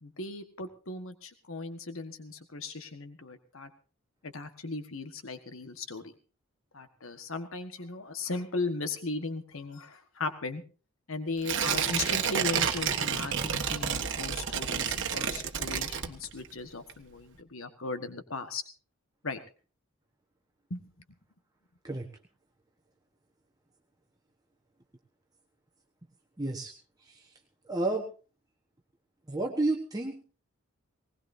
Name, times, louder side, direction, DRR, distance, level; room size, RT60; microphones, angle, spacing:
voice 1, 0.0-3.7 4.2-6.1 6.7-10.6 11.1-18.6 19.2-19.4 20.7-20.8, left 3 dB, 65° left, 9 dB, 1.5 m, -37 dB
Tearing, 11.4-16.5 16.9-17.0, right 7 dB, 55° right, 1.4 m, -30 dB
voice 2, 26.4-26.7 27.0-27.3 27.7-28.1 29.3-30.2, right 2 dB, 15° right, 1 dB, 1.2 m, -31 dB
19.5 x 19.0 x 2.7 m, 0.36 s
head